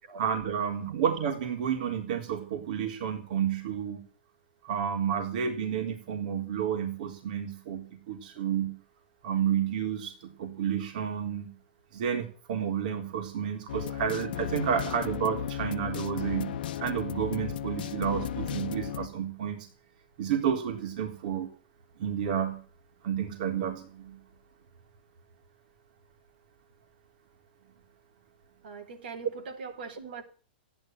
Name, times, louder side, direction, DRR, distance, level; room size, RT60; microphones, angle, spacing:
voice 1, 0.2-4.0 4.6-8.7 9.2-11.5 11.9-19.7 20.2-21.5 22.0-22.6 23.0-24.2, right 8 dB, 50° right, 3 dB, 3.7 m, -31 dB
sound 1, 13.7-19.1, left 10 dB, 60° left, 1.0 m, -35 dB
voice 2, 28.6-30.2, right 4 dB, 70° right, 4 dB, 4.1 m, -41 dB
15.0 x 10.5 x 9.0 m, 0.42 s
supercardioid pair, 165°, 6 cm